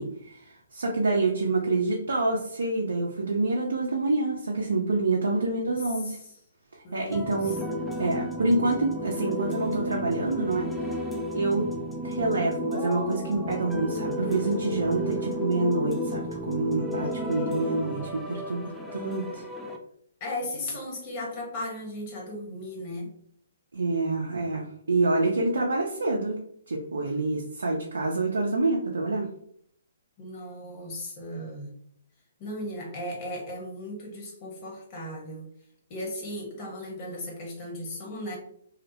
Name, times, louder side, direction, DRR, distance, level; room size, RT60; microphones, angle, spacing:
voice 1, 0.0-6.2 6.9-7.6 8.0-10.7 11.3-11.6 12.0-19.4 23.7-26.4 26.7-29.3, right 2 dB, 75° right, -1 dB, 0.4 m, -27 dB
voice 2, 5.2-5.7 6.8-7.5 20.2-23.1 30.2-31.7 32.4-35.5 35.9-38.4, left 1 dB, 35° left, -1 dB, 1.0 m, -36 dB
sound 1, 7.1-19.8, left 1 dB, 5° left, 0.3 m, -32 dB
2.7 x 2.0 x 2.7 m, 0.66 s
figure-of-eight pair, 130°, 0 cm